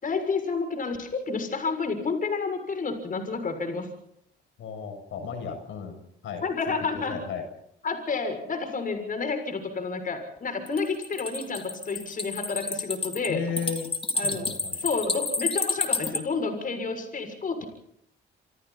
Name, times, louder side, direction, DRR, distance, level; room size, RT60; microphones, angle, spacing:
voice 1, 0.0-3.9 6.4-7.2 7.8-13.4 14.1-14.5 14.8-17.7, left 4 dB, 45° left, 6 dB, 6.7 m, -30 dB
voice 2, 4.6-7.4 13.3-13.9 14.2-14.7, left 6 dB, 80° left, 5 dB, 7.3 m, -35 dB
sound 1, 10.7-16.2, left 3 dB, 25° left, 3.6 m, -30 dB
27.5 x 27.0 x 4.3 m, 0.72 s
cardioid pair, 90°, 20 cm